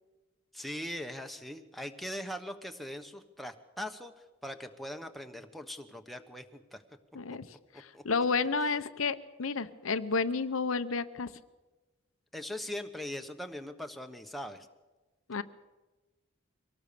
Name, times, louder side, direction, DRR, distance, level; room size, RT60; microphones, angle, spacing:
voice 1, 0.5-6.8 7.7-8.0 12.3-14.7, left 1 dB, ahead, 5 dB, 1.1 m, -41 dB
voice 2, 7.1-7.5 7.8-11.3 15.3-15.4, left 4 dB, 85° left, 11 dB, 0.9 m, -31 dB
24.0 x 18.0 x 6.9 m, 1.1 s
head